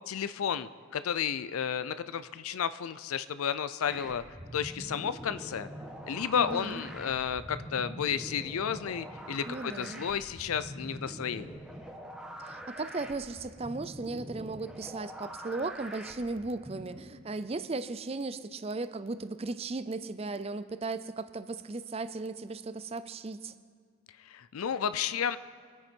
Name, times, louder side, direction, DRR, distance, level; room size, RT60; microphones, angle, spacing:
voice 1, 0.1-4.2 4.5-5.7 6.1-11.6 24.3-25.4, left 8 dB, 90° left, 14 dB, 0.5 m, -32 dB
sound 1, 3.9-17.0, equal, 5° right, 1.2 m, -44 dB
voice 2, 6.3-6.8 9.4-10.0 12.4-23.5, right 3 dB, 30° right, 13 dB, 0.5 m, -36 dB
23.5 x 9.5 x 4.5 m, 2.2 s
head